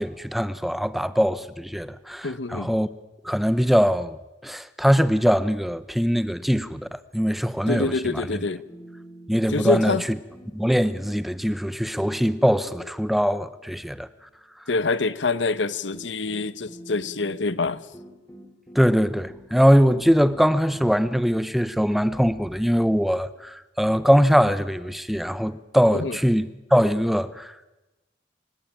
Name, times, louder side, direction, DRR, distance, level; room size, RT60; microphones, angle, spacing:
voice 1, 0.0-2.9 3.2-4.2 4.4-8.3 9.3-10.2 10.5-14.1 18.7-27.7, equal, ahead, 0.9 m, -22 dB
voice 2, 2.2-2.7 7.7-8.6 9.5-10.0 14.7-17.9 25.9-26.2, left 3 dB, 80° left, 1.1 m, -26 dB
sound 1, 8.3-9.7 9.9-11.5 11.9-14.4 15.4-15.5 15.9-23.4, right 1 dB, 15° left, 3.6 m, -46 dB
29.0 x 16.5 x 8.9 m
head